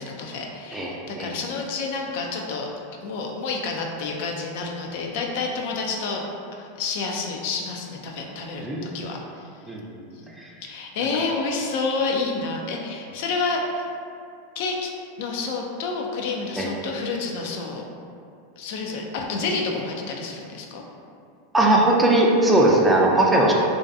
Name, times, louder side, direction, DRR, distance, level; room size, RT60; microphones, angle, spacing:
voice 1, 0.0-2.7 3.0-6.2 6.5-9.5 10.1-10.3 10.6-13.8 14.6-14.9 15.2-17.8 18.6-20.8, left 4 dB, 65° left, 1 dB, 0.3 m, -29 dB
voice 2, 8.6-9.0 9.7-9.8 16.6-16.7 21.5-23.5, right 1 dB, 10° right, -2 dB, 0.4 m, -18 dB
2.4 x 2.2 x 2.5 m, 2.4 s
hypercardioid pair, 100°, 0 cm